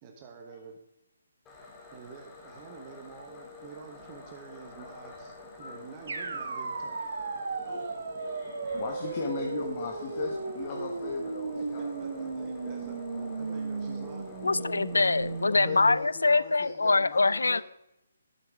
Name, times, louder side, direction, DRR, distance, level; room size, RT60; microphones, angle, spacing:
voice 1, 0.0-0.8 1.9-7.0 11.6-13.0 13.4-14.4 15.4-15.5, right 6 dB, 25° right, 1.1 m, -48 dB
sound 1, 1.5-15.5, left 3 dB, 15° left, 2.0 m, -47 dB
sound 2, 6.1-16.0, right 4 dB, 65° right, 1.4 m, -35 dB
voice 2, 7.6-12.1 15.4-17.6, left 5 dB, 40° left, 1.3 m, -38 dB
voice 3, 14.4-17.6, left 3 dB, 90° left, 0.3 m, -24 dB
12.0 x 7.1 x 3.6 m
hypercardioid pair, 155°, 0 cm